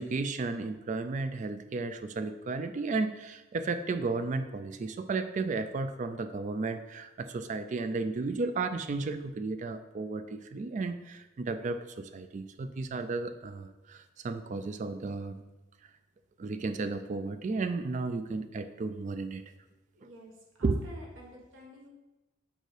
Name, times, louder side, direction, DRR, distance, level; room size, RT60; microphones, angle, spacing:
voice 1, 0.0-15.4 16.4-19.4 20.6-20.8, right 3 dB, 40° right, 9 dB, 0.3 m, -33 dB
voice 2, 19.9-20.3 20.6-21.9, equal, 90° right, -1 dB, 1.4 m, -50 dB
6.5 x 4.6 x 3.3 m, 1.1 s
head